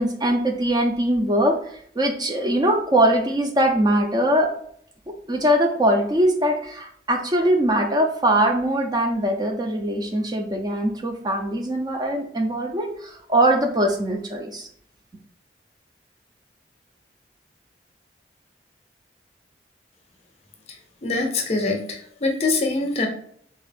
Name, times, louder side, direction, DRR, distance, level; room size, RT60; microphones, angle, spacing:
voice 1, 0.0-4.5 5.3-14.7, right 1 dB, 25° right, 3 dB, 0.4 m, -21 dB
voice 2, 21.0-23.1, left 3 dB, 35° left, 3 dB, 0.5 m, -24 dB
3.5 x 2.4 x 3.3 m, 0.64 s
head